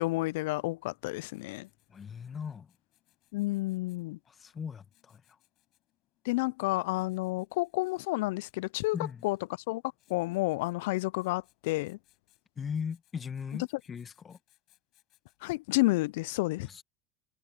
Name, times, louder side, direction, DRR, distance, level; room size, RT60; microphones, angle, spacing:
voice 1, 0.0-1.7 3.3-4.2 6.3-9.0 9.2-9.4 9.7-9.8 10.1-12.0 15.4-16.7, left 21 dB, 75° left, 0.3 m, -30 dB
Writing, 0.9-15.9, left 16 dB, 60° left, 5.8 m, -72 dB
voice 2, 1.9-2.7 4.3-5.2 8.9-9.2 12.6-14.4 16.6-16.8, left 6 dB, 35° left, 1.2 m, -38 dB
hypercardioid pair, 80°, 0 cm